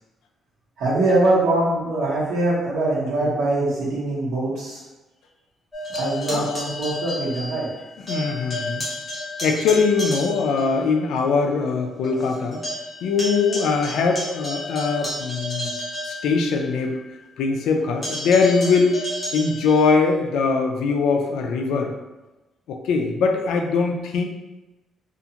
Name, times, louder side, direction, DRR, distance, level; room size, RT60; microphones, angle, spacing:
voice 1, 0.8-4.8 5.9-7.7, right 2 dB, 70° right, -6 dB, 1.0 m, -22 dB
sound 1, 5.7-7.8 8.1-10.7 11.2-11.3 11.7-11.8 12.0-16.8 18.0-19.9, left 1 dB, 10° left, 0.9 m, -31 dB
voice 2, 8.1-8.9 9.4-12.6 13.0-15.7 16.0-17.0 17.4-19.0 19.3-21.9 22.7-24.2, left 4 dB, 85° left, 4 dB, 0.3 m, -21 dB
2.4 x 2.4 x 2.8 m, 1.1 s
cardioid pair, 175°, 0 cm